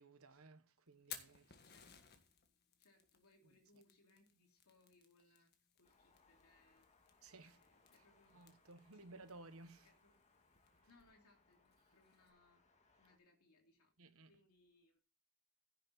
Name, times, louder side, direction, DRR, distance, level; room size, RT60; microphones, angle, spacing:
voice 1, 0.0-1.6 7.2-7.6 8.3-9.9 14.0-14.3, right 2 dB, 70° right, 1.3 m, -58 dB
Fire, 0.9-12.3, left 8 dB, 50° left, 1.6 m, -61 dB
voice 2, 1.6-2.2 2.8-6.9 7.4-8.3 8.9-9.1 9.8-10.2 10.9-12.6 13.0-13.9 14.3-15.0, left 2 dB, 90° left, 2.9 m, -72 dB
sound 1, 5.8-13.2, left 3 dB, 30° left, 1.8 m, -74 dB
15.5 x 6.7 x 4.1 m
head